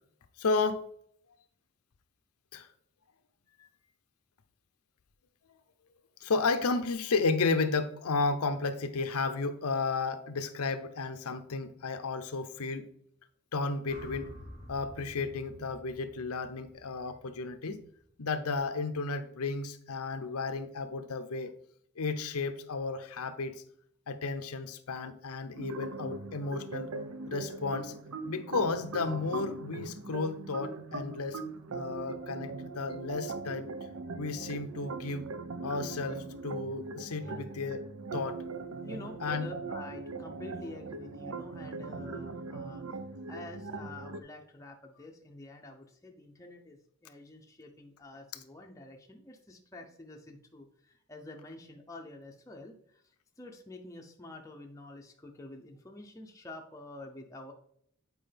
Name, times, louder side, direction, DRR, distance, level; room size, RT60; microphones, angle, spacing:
voice 1, 0.4-0.9 2.5-2.7 6.2-12.9 13.5-14.3 14.7-17.8 18.2-21.5 22.0-23.6 24.1-26.9 27.3-27.9 28.3-31.4 31.7-33.7 34.2-35.3 35.6-37.8 38.1-38.4 39.2-39.4, left 4 dB, 85° left, 0.6 m, -33 dB
sound 1, 13.9-18.1, equal, 30° right, 1.3 m, -50 dB
sound 2, 25.5-44.2, right 3 dB, 75° right, 0.6 m, -40 dB
voice 2, 38.8-42.8 43.3-57.5, left 2 dB, 15° left, 0.6 m, -48 dB
7.8 x 4.8 x 3.3 m
head